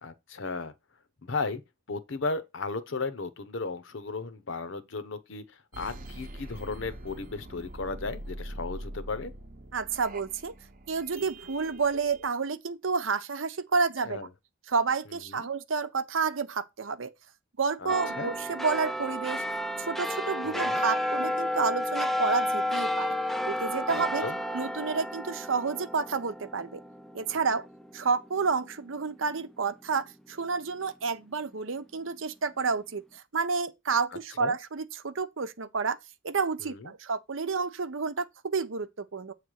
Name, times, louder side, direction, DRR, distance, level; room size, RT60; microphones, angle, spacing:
voice 1, 0.0-0.7 1.2-1.6 1.9-5.4 5.8-9.3 14.0-14.3 15.3-15.5 17.8-18.3 20.4-20.8 23.9-24.4 34.4-34.6 36.6-36.9, left 3 dB, 70° left, 0.9 m, -35 dB
sound 1, 5.7-12.3, right 1 dB, 45° right, 0.8 m, -43 dB
voice 2, 9.7-10.5 10.9-14.3 14.7-17.1 17.6-19.4 19.8-23.2 23.4-24.3 24.5-26.8 27.1-27.7 27.9-36.0 36.2-39.3, right 5 dB, 75° right, 0.8 m, -30 dB
sound 2, 17.9-28.7 29.1-29.2, left 1 dB, ahead, 0.4 m, -32 dB
8.2 x 3.3 x 6.3 m
head